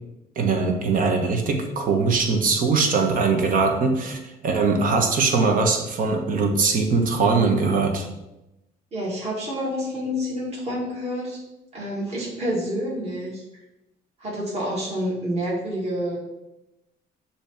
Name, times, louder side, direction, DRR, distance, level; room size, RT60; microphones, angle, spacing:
voice 1, 0.4-8.1, right 4 dB, 55° right, 3 dB, 1.2 m, -21 dB
voice 2, 8.9-11.4 11.7-13.4 14.2-16.2, equal, 40° right, -5 dB, 2.3 m, -28 dB
6.8 x 3.0 x 5.9 m, 0.92 s
cardioid pair, 110°, 17 cm